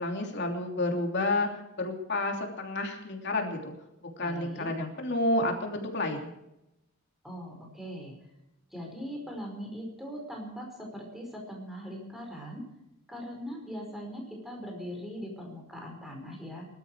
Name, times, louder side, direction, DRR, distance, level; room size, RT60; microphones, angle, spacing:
voice 1, 0.0-1.5 1.8-3.7 4.0-6.3, left 2 dB, 50° left, 2 dB, 3.0 m, -30 dB
voice 2, 4.2-4.7 7.2-8.1 8.7-12.6 13.1-16.7, equal, ahead, 1 dB, 5.0 m, -40 dB
21.5 x 12.5 x 4.7 m, 0.87 s
head